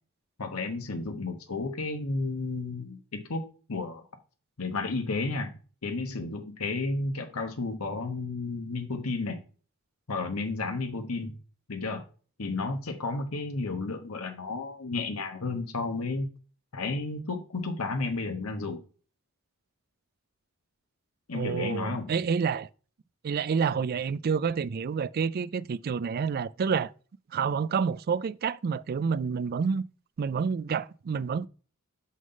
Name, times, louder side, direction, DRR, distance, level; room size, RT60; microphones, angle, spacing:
voice 1, 0.4-4.0 4.6-5.5 5.8-9.4 10.1-11.4 11.7-12.0 12.4-16.3 16.7-18.8 21.3-22.1, left 3 dB, 85° left, 1.1 m, -32 dB
voice 2, 21.3-22.7 23.2-26.9 27.3-29.8 30.2-31.5, right 6 dB, 45° right, 0.3 m, -28 dB
6.3 x 5.7 x 5.3 m
head